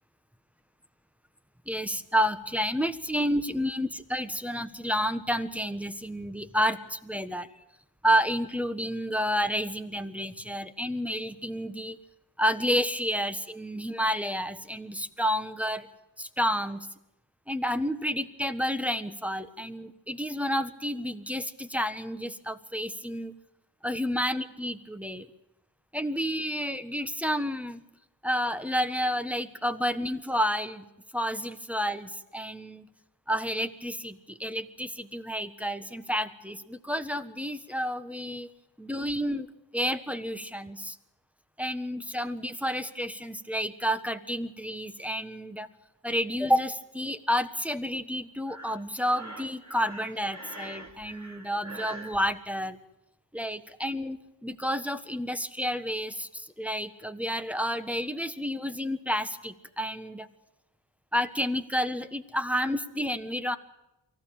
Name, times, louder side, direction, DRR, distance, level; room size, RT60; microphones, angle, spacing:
voice 1, 1.7-7.5 8.0-12.0 12.4-15.9 16.2-16.9 17.5-23.3 23.8-25.3 25.9-27.8 28.2-30.8 31.1-32.9 33.3-38.5 38.8-39.5 39.7-41.0 41.6-45.7 46.0-52.8 53.3-60.3 61.1-63.6, equal, 5° right, 8 dB, 1.4 m, -30 dB
Breathing, 48.5-52.2, right 2 dB, 40° right, 3.3 m, -43 dB
24.5 x 15.0 x 9.1 m, 0.90 s
wide cardioid pair, 55°, 44 cm